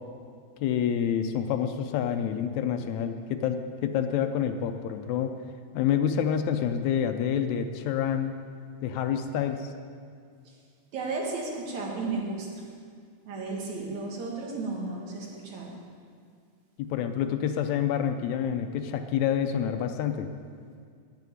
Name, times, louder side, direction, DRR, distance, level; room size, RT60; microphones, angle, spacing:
voice 1, 0.6-5.3 5.7-8.3 8.8-9.7 16.8-20.3, left 8 dB, 80° left, 8 dB, 1.9 m, -28 dB
voice 2, 10.9-12.6 13.3-15.7, right 3 dB, 70° right, -1 dB, 3.1 m, -34 dB
9.5 x 8.3 x 9.2 m, 2.2 s
omnidirectional pair, 3.4 m